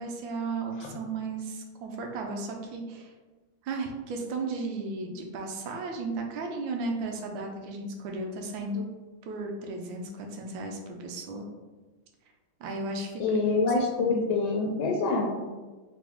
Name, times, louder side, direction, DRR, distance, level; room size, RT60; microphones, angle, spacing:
voice 1, 0.0-3.1 3.6-8.9 9.3-11.5 12.6-14.1, right 3 dB, 75° right, 2 dB, 1.3 m, -35 dB
voice 2, 13.2-15.3, left 3 dB, 75° left, 0 dB, 1.3 m, -25 dB
3.9 x 3.0 x 3.4 m, 1.3 s
omnidirectional pair, 2.2 m